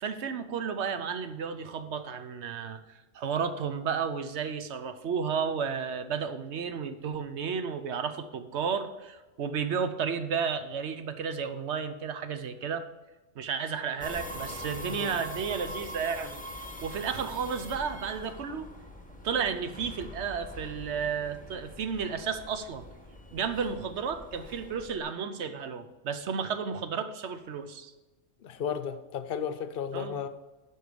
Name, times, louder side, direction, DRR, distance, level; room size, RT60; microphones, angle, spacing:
voice 1, 0.0-2.8 3.1-12.9 13.4-16.4 16.8-18.7 19.2-22.9 23.3-27.9 29.9-30.2, right 6 dB, 60° right, 10 dB, 1.0 m, -32 dB
sound 1, 14.0-25.0, left 1 dB, 5° left, 0.9 m, -43 dB
voice 2, 14.9-15.2 28.4-30.3, left 7 dB, 50° left, 10 dB, 0.9 m, -34 dB
11.0 x 4.7 x 6.9 m, 1.1 s
omnidirectional pair, 1.4 m